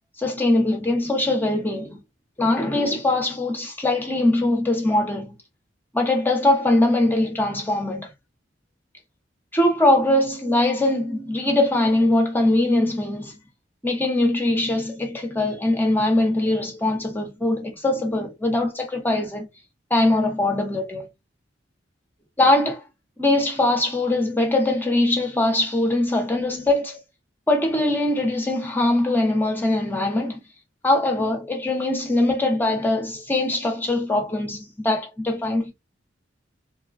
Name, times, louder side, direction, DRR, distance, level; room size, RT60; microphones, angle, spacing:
voice 1, 0.2-2.0 2.4-5.3 5.9-8.1 9.5-13.4 13.8-19.5 19.9-21.1 22.4-22.8 23.2-27.0 27.5-30.4 30.8-35.7, left 2 dB, 10° left, 0.7 m, -22 dB
3.1 x 2.2 x 2.4 m
head